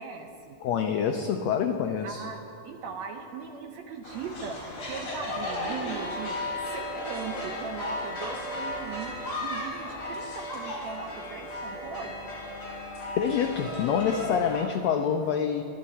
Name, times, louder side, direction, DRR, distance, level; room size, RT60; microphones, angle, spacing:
voice 1, 0.0-0.6 2.0-2.4 2.6-12.4, right 5 dB, 70° right, 3 dB, 1.7 m, -39 dB
voice 2, 0.6-2.2 13.2-15.6, left 7 dB, 85° left, 6 dB, 1.5 m, -26 dB
sound 1, 4.0-14.6, left 1 dB, 40° left, 4.9 m, -35 dB
22.0 x 12.0 x 4.2 m, 2.7 s
omnidirectional pair, 3.9 m